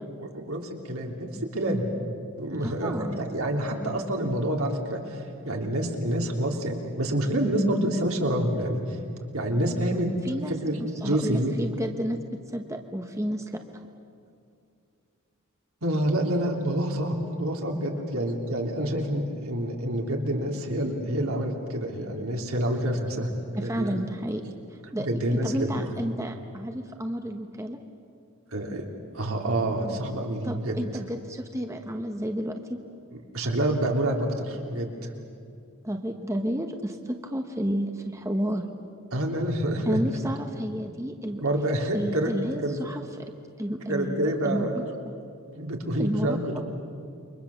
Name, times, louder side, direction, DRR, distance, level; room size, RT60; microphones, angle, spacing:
voice 1, 0.2-1.9 2.4-9.0 9.3-10.1 10.5-11.5 15.8-24.0 25.0-25.8 28.5-28.8 29.1-30.8 33.3-35.1 39.1-40.0 41.4-42.3 42.6-42.8 43.9-44.8 45.6-46.6, right 1 dB, 75° right, 1 dB, 3.4 m, -27 dB
voice 2, 2.6-3.2 10.2-12.2 12.5-13.6 23.5-27.8 30.4-32.8 35.8-38.6 39.9-41.4 41.9-44.7 45.0-45.1 46.0-46.6, equal, 15° right, 4 dB, 1.1 m, -31 dB
29.0 x 23.5 x 7.2 m, 2.4 s
head